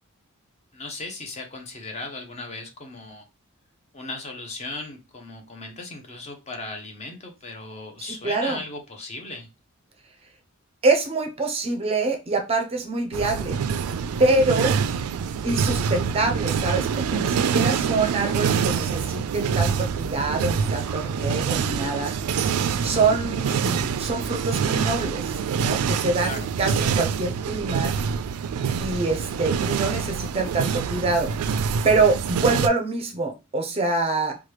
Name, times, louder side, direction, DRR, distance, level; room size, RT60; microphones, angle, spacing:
voice 1, 0.7-3.3 3.9-9.5 23.5-23.7 26.2-26.5, left 2 dB, 30° left, 0.6 m, -37 dB
voice 2, 8.0-8.6 10.8-13.6 14.2-14.8 15.4-22.1 22.8-27.9 28.8-31.3 31.8-34.4, right 3 dB, 25° right, 0.5 m, -25 dB
sound 1, 13.1-32.7, right 6 dB, 85° right, 0.3 m, -25 dB
3.0 x 2.2 x 3.2 m
head